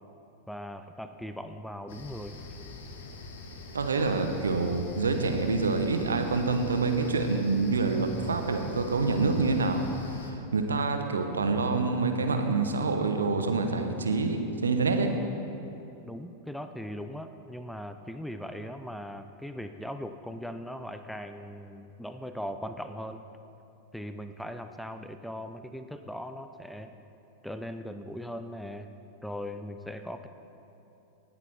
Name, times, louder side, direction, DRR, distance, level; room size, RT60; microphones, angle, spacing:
voice 1, 0.5-2.4 16.0-23.2 23.9-27.0 27.4-28.9 29.2-30.3, equal, ahead, 8 dB, 0.5 m, -39 dB
sound 1, 1.9-10.3, left 3 dB, 55° left, 1.5 m, -44 dB
voice 2, 3.7-15.1, right 3 dB, 70° right, 6 dB, 1.1 m, -27 dB
19.0 x 8.9 x 4.4 m, 2.9 s
figure-of-eight pair, 90°, 0 cm